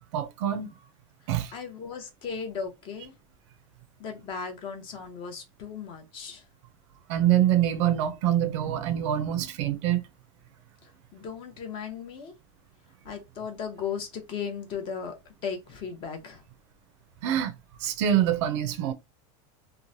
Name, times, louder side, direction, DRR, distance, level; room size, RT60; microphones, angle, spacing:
voice 1, 0.1-0.7 1.3-1.5 7.1-10.0 17.2-17.5 17.8-18.9, right 11 dB, 55° right, 0.4 m, -25 dB
voice 2, 1.2-3.1 4.0-6.4 10.8-12.4 13.0-15.2 15.4-16.4, left 6 dB, 30° left, 0.7 m, -36 dB
2.9 x 2.1 x 2.6 m
supercardioid pair, 165°, 17 cm